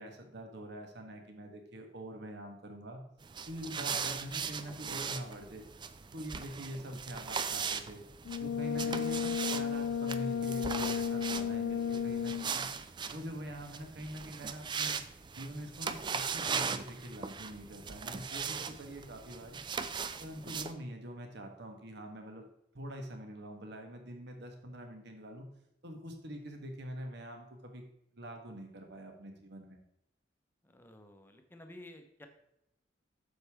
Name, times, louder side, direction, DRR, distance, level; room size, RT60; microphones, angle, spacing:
voice 1, 0.0-3.0 3.5-5.6 6.1-8.0 8.4-12.7 13.1-15.0 15.4-19.6 20.2-22.4 22.7-25.5 25.8-27.8 28.1-29.8, equal, 60° right, 4 dB, 1.3 m, -44 dB
sound 1, 3.2-20.7, right 6 dB, 25° right, 0.4 m, -39 dB
Brass instrument, 8.2-12.6, left 7 dB, 60° left, 0.3 m, -33 dB
voice 2, 30.6-32.3, left 1 dB, 10° left, 5 dB, 0.8 m, -52 dB
7.9 x 6.6 x 3.5 m, 0.79 s
head